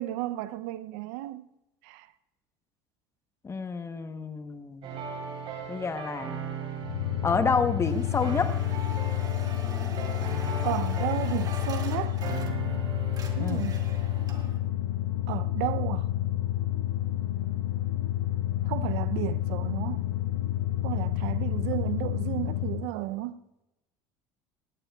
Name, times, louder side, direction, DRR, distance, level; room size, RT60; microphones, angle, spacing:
voice 1, 0.0-1.5 1.8-2.1 10.6-12.2 13.4-13.9 15.3-16.1 18.6-20.0 20.8-23.4, right 16 dB, 75° right, 0.6 m, -33 dB
voice 2, 3.4-4.9 5.7-6.3 7.2-8.5 13.4-13.6, left 4 dB, 25° left, 1.0 m, -28 dB
sound 1, 4.8-14.5, right 6 dB, 50° right, 3.9 m, -39 dB
sound 2, 6.8-22.9, left 13 dB, 90° left, 0.4 m, -29 dB
sound 3, 7.8-12.8 13.0-14.6, right 4 dB, 35° right, 2.4 m, -44 dB
18.5 x 17.0 x 2.3 m
hypercardioid pair, 85°, 12 cm